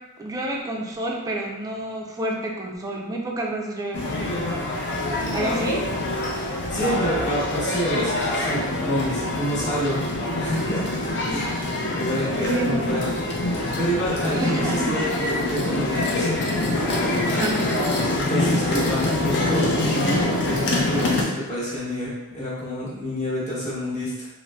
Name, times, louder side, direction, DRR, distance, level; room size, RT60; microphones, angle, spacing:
voice 1, 0.2-4.7 5.3-5.9 11.3-11.4 12.4-13.1 14.3-15.0 17.3-17.7, right 1 dB, 15° right, -1 dB, 0.3 m, -29 dB
sound 1, 3.9-21.2, left 2 dB, 55° left, 0.5 m, -25 dB
voice 2, 6.7-10.0 10.3-10.8 11.3-13.4 13.8-16.4 18.1-24.3, equal, 35° left, -8 dB, 1.0 m, -28 dB
3.8 x 2.0 x 2.2 m, 1.0 s
head